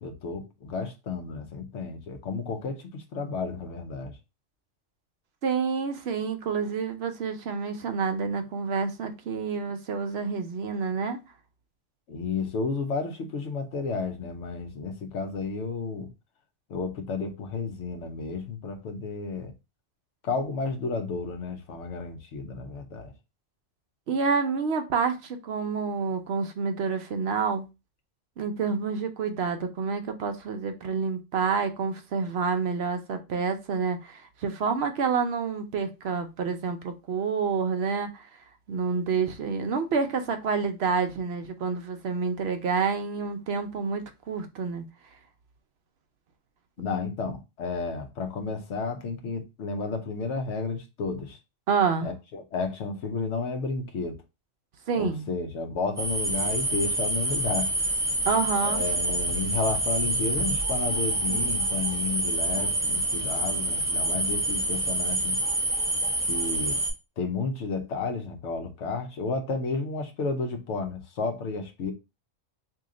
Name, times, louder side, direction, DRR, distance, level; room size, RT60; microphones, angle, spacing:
voice 1, 0.0-4.2 12.1-16.1 16.7-19.5 20.2-23.1 46.8-51.4 52.0-54.2 54.9-57.7 58.6-65.4 66.3-66.8 67.2-71.9, left 4 dB, 70° left, 1.0 m, -32 dB
voice 2, 5.4-11.2 24.1-27.7 28.4-38.2 38.7-44.8 51.7-52.1 54.9-55.3 58.3-58.8, right 5 dB, 65° right, 0.8 m, -28 dB
sound 1, 56.0-66.9, right 1 dB, 5° right, 1.5 m, -27 dB
3.0 x 2.7 x 3.6 m
omnidirectional pair, 1.3 m